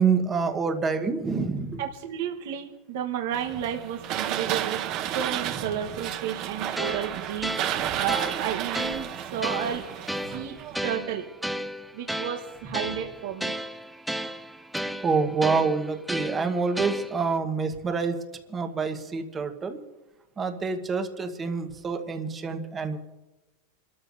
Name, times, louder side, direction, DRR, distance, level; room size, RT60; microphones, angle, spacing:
voice 1, 0.0-1.8 7.7-7.8 10.3-10.4 15.0-18.2 18.5-19.8 20.4-23.0, right 5 dB, 15° right, 6 dB, 1.2 m, -27 dB
voice 2, 1.8-9.8 10.3-10.6 10.8-11.3 11.9-13.5, right 9 dB, 65° right, 3 dB, 1.2 m, -32 dB
sound 1, 3.3-10.9, right 11 dB, 40° right, 0.8 m, -32 dB
sound 2, 6.8-17.4, equal, ahead, 0.5 m, -34 dB
28.0 x 13.0 x 2.7 m, 1.1 s
supercardioid pair, 160°, 0 cm